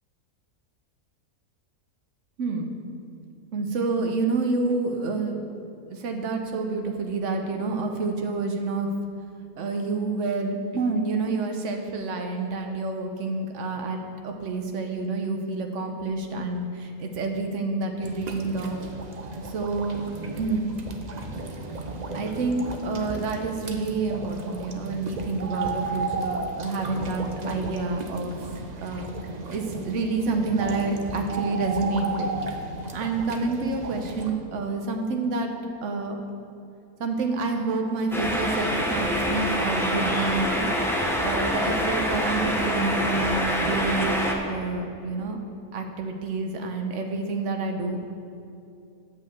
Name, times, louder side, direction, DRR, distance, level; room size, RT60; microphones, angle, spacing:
voice 1, 2.4-2.8 3.5-5.4 5.9-8.9 9.6-14.0 14.2-18.8 19.4-20.0 20.4-20.6 22.1-28.5 28.8-29.1 29.5-32.3 32.9-35.5 35.8-36.2 37.0-40.7 41.2-44.1 44.4-45.4 45.7-48.1, right 3 dB, 60° right, 4 dB, 1.2 m, -28 dB
sound 1, 18.0-34.3, right 3 dB, 40° right, 0.6 m, -34 dB
sound 2, 38.1-44.3, equal, ahead, 0.7 m, -25 dB
8.8 x 5.7 x 8.0 m, 2.6 s
omnidirectional pair, 1.5 m